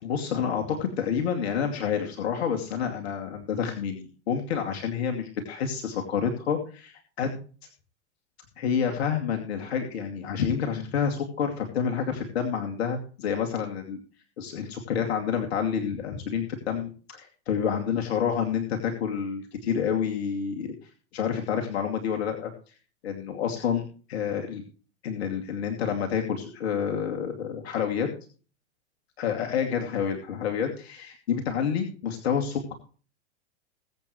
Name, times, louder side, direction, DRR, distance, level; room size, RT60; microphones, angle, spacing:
voice 1, 0.0-7.4 8.6-14.0 14.4-20.7 21.1-22.5 23.0-24.6 25.0-28.1 29.2-32.7, left 7 dB, 60° left, 2 dB, 2.6 m, -28 dB
21.5 x 8.4 x 3.2 m, 0.38 s
figure-of-eight pair, 95°, 36 cm